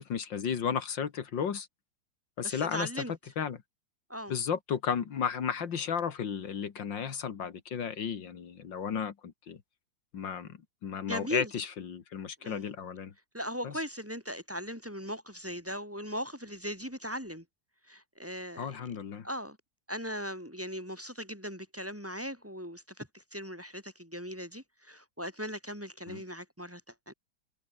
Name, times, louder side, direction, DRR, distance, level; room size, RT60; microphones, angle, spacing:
voice 1, 0.0-1.7 2.4-2.9 3.4-3.6 4.3-9.6 10.1-13.1 13.6-13.7 18.6-19.3 26.1-26.2, left 7 dB, 80° left, 2.5 m, -34 dB
voice 2, 2.4-3.1 4.1-4.3 11.0-11.5 12.4-12.6 13.3-17.4 17.9-18.8 19.2-19.6 19.9-26.8 27.1-27.2, equal, 5° right, 4.8 m, -38 dB
omnidirectional pair, 2.0 m